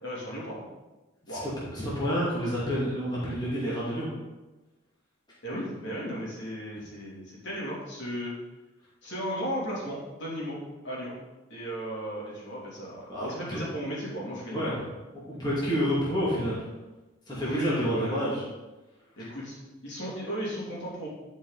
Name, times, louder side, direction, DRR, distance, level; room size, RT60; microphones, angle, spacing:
voice 1, 0.0-0.6 1.3-1.5 5.4-8.3 9.0-10.6 10.8-11.1 11.5-14.8 17.3-18.2 19.2-19.6 19.8-21.1, equal, 65° left, -6 dB, 3.0 m, -35 dB
voice 2, 1.3-4.1 13.1-13.7 14.5-14.8 15.3-16.6 17.3-18.4 19.2-19.3, equal, 20° left, -8 dB, 2.3 m, -29 dB
11.0 x 5.3 x 4.1 m, 1.1 s
head